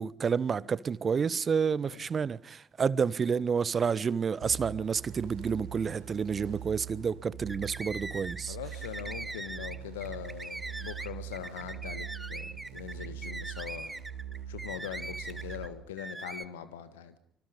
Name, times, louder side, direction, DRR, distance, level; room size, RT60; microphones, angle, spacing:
voice 1, 0.0-8.6, right 6 dB, 35° right, 0.8 m, -29 dB
sound 1, 4.4-15.7, right 9 dB, 65° right, 3.7 m, -43 dB
sound 2, 7.4-8.4 8.7-15.7 16.0-16.5, right 2 dB, 15° right, 1.1 m, -41 dB
voice 2, 8.5-14.0 14.5-17.2, left 10 dB, 75° left, 1.8 m, -42 dB
26.5 x 26.0 x 5.3 m
figure-of-eight pair, 50°, 0 cm